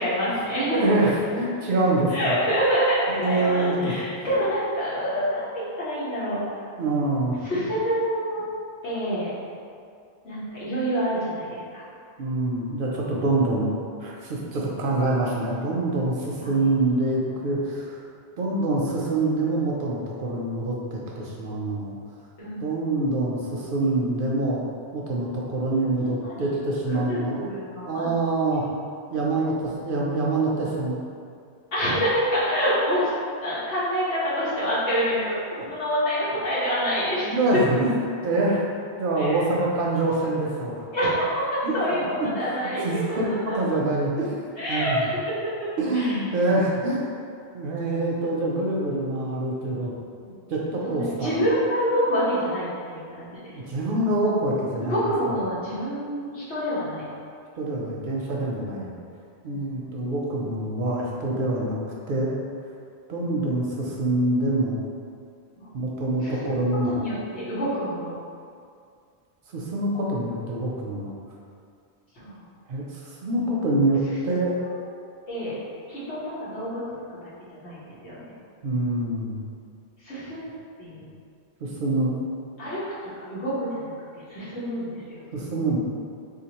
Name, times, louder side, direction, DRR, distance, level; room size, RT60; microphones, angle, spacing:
voice 1, 0.0-0.8 1.2-1.4 2.1-6.4 7.4-8.4 8.8-9.3 10.2-11.8 16.4-16.5 22.4-22.7 26.0-26.4 26.9-28.1 28.6-28.7 29.3-29.4 31.7-33.1 33.4-37.3 37.7-37.8 39.2-39.4 40.9-41.3 41.7-42.8 43.1-43.6 44.6-45.0 45.6-45.7 45.9-46.2 50.8-53.6 54.8-57.0 65.5-65.7 66.2-66.6 66.9-68.1 72.1-72.4 75.3-75.6 75.9-76.8 77.5-78.3 80.0-81.0 82.6-82.8 83.2-85.2, equal, 90° left, -11 dB, 1.5 m, -27 dB
voice 2, 0.7-2.4 3.1-4.0 6.8-7.6 12.2-13.7 14.0-18.0 18.4-22.0 22.6-24.7 24.9-27.4 27.9-28.7 29.1-31.0 35.6-35.7 37.2-38.0 38.2-38.7 39.0-40.8 41.6-41.8 42.2-42.3 42.8-44.4 44.7-45.0 45.8-47.0 47.5-49.9 50.2-51.4 53.5-55.0 57.6-58.9 59.4-61.8 62.1-62.3 63.1-64.8 65.7-67.0 69.5-71.1 72.7-74.6 78.6-79.4 81.6-82.1 85.3-85.8, right 2 dB, 60° right, -3 dB, 0.6 m, -25 dB
3.6 x 2.8 x 2.9 m, 2.3 s
omnidirectional pair, 1.1 m